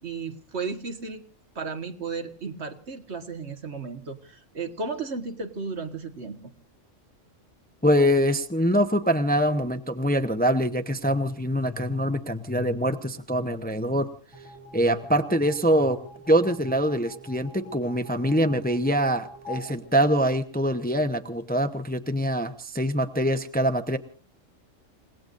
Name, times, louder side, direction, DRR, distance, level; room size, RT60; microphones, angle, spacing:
voice 1, 0.0-1.2 1.6-6.4, right 4 dB, 60° right, 6 dB, 1.8 m, -34 dB
voice 2, 7.8-14.1 14.7-16.0 16.3-24.0, equal, 10° left, 7 dB, 0.8 m, -24 dB
sound 1, 14.3-20.8, equal, 20° right, 6.1 m, -45 dB
29.0 x 18.0 x 2.6 m, 0.42 s
omnidirectional pair, 1.3 m